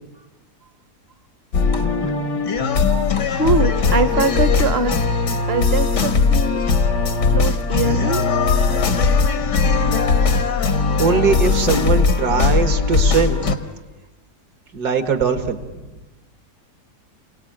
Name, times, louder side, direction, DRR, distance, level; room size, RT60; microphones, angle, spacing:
sound 1, 1.5-13.6, left 4 dB, 85° left, 2.1 m, -19 dB
voice 1, 3.3-5.1 5.5-6.6 7.3-8.2, right 3 dB, 40° right, 12 dB, 1.2 m, -22 dB
voice 2, 11.0-13.5 14.7-15.8, right 5 dB, 70° right, 8 dB, 2.3 m, -20 dB
28.5 x 18.5 x 8.9 m, 1.1 s
omnidirectional pair, 1.8 m